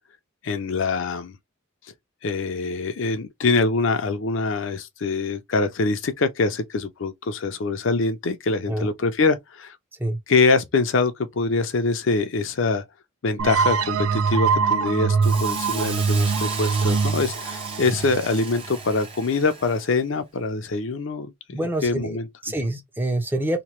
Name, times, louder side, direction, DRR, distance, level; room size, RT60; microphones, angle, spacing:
voice 1, 0.4-1.4 2.2-9.8 10.3-12.8 13.2-22.3, left 3 dB, 60° left, 0.5 m, -24 dB
sound 1, 13.4-18.9, right 5 dB, 85° right, 0.5 m, -23 dB
Hiss, 15.2-19.9, right 5 dB, 25° right, 0.9 m, -35 dB
voice 2, 21.5-22.2 22.4-23.6, right 1 dB, 10° right, 0.5 m, -26 dB
2.9 x 2.1 x 3.0 m
head